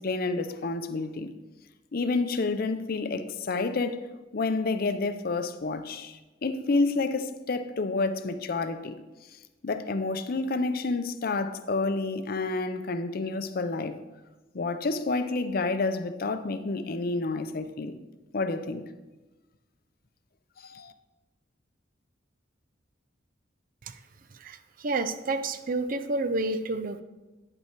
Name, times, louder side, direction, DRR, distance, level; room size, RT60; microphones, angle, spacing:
voice 1, 0.0-1.3 1.9-4.1 4.3-9.0 9.6-14.0 14.5-18.0 18.3-18.8 20.6-20.9, left 3 dB, 55° left, 0.6 m, -29 dB
voice 2, 24.4-27.0, right 2 dB, 50° right, 0.5 m, -30 dB
9.4 x 5.6 x 4.5 m
head